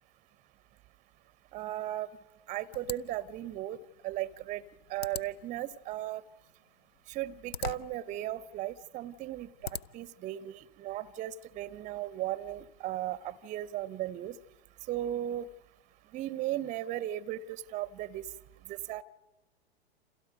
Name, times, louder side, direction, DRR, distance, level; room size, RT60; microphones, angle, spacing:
voice 1, 1.5-2.1 2.5-3.8 4.0-4.6 4.9-6.2 7.1-14.4 14.9-15.5 16.1-18.3 18.7-19.0, right 13 dB, 25° right, 22 dB, 0.7 m, -36 dB
sound 1, 2.7-10.2, left 7 dB, 75° left, 0.7 m, -45 dB
29.5 x 27.5 x 5.2 m, 1.1 s
figure-of-eight pair, 95°, 31 cm